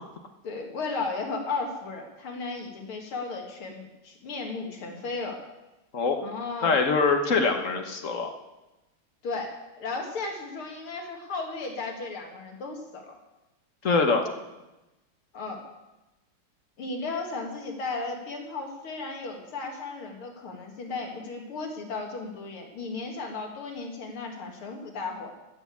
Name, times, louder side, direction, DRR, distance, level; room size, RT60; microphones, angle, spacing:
voice 1, 0.4-5.4 6.2-6.8 9.2-13.2 15.3-15.6 16.8-25.3, left 3 dB, 85° left, 2 dB, 2.9 m, -35 dB
voice 2, 6.6-8.3 13.8-14.2, left 4 dB, 45° left, 5 dB, 1.4 m, -23 dB
14.5 x 6.8 x 8.3 m, 1.0 s
omnidirectional pair, 2.3 m